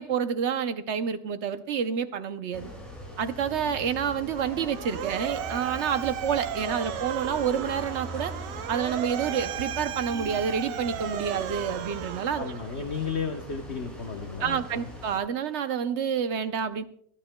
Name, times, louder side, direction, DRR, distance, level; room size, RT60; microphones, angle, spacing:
voice 1, 0.0-2.7 3.2-8.3 8.7-12.6 14.4-16.8, right 7 dB, 60° right, 10 dB, 0.7 m, -28 dB
sound 1, 2.5-15.2, equal, ahead, 6.1 m, -41 dB
Motor vehicle (road) / Siren, 4.3-12.9, right 9 dB, 90° right, 1.3 m, -35 dB
voice 2, 12.4-14.9, left 5 dB, 45° left, 5 dB, 1.0 m, -33 dB
27.0 x 12.5 x 2.2 m, 0.64 s
omnidirectional pair, 1.8 m